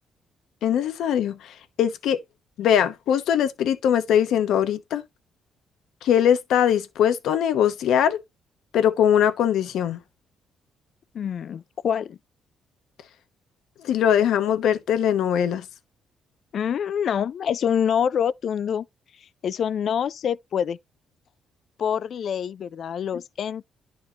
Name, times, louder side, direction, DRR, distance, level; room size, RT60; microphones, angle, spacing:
voice 1, 0.6-2.2 2.6-5.0 6.0-8.2 8.7-10.0 13.8-15.6, left 9 dB, 80° left, 1.0 m, -21 dB
voice 2, 11.1-12.2 16.5-18.9 19.4-20.8 21.8-23.7, left 8 dB, 60° left, 0.4 m, -26 dB
11.0 x 4.3 x 2.8 m
cardioid pair, 90°, 0 cm